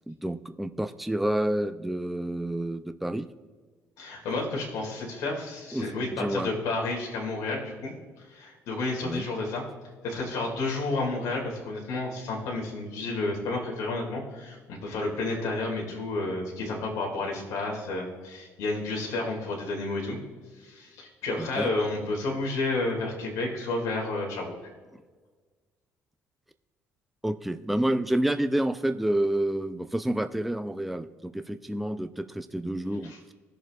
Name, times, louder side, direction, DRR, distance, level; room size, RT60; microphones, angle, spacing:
voice 1, 0.0-3.3 5.7-5.8 6.2-6.5 9.0-9.3 21.4-21.7 27.2-33.1, right 1 dB, ahead, 9 dB, 0.4 m, -29 dB
voice 2, 4.0-9.6 10.0-20.2 20.6-24.5 33.0-33.2, left 2 dB, 80° left, -1 dB, 2.3 m, -31 dB
18.0 x 6.9 x 2.4 m, 1.4 s
cardioid pair, 125°, 6 cm